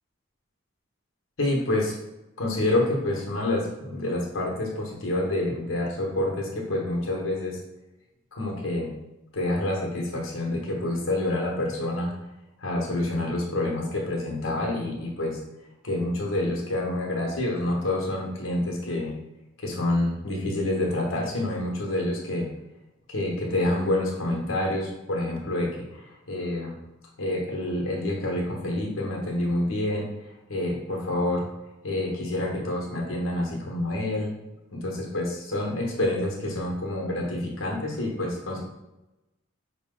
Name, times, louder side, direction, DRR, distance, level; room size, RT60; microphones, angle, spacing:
voice 1, 1.4-1.9 2.4-7.6 8.3-8.9 9.3-12.1 12.6-15.4 15.8-19.1 19.6-22.5 23.1-26.8 27.2-30.1 30.5-31.5 31.8-34.3 34.7-38.6, left 1 dB, 80° left, -2 dB, 1.2 m, -27 dB
5.7 x 2.2 x 3.7 m, 0.97 s
head